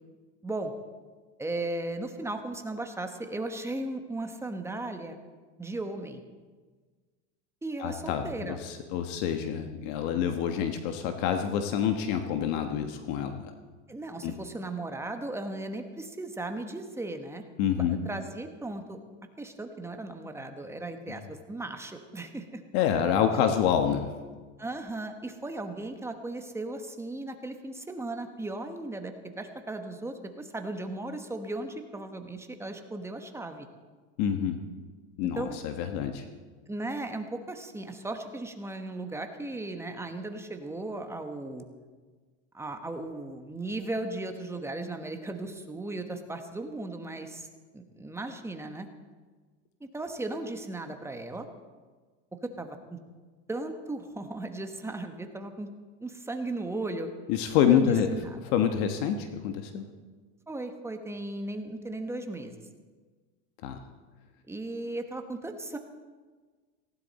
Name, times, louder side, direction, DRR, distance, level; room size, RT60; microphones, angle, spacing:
voice 1, 1.4-5.2 5.6-6.2 7.6-8.6 13.9-17.4 17.8-19.0 19.4-22.6 24.6-33.7 35.3-35.6 36.7-41.6 42.5-47.5 47.7-48.9 49.8-51.5 52.4-53.0 53.5-55.7 56.0-57.1 57.7-58.4 60.5-62.6 64.5-65.8, right 2 dB, 5° right, 6 dB, 1.1 m, -36 dB
voice 2, 7.8-13.5 14.2-14.3 17.6-18.0 22.7-24.1 34.2-34.6 35.2-36.3 57.3-58.1 58.4-59.8 63.6-63.8, left 9 dB, 60° left, 6 dB, 1.3 m, -27 dB
18.5 x 16.0 x 4.2 m, 1.4 s
supercardioid pair, 140°, 36 cm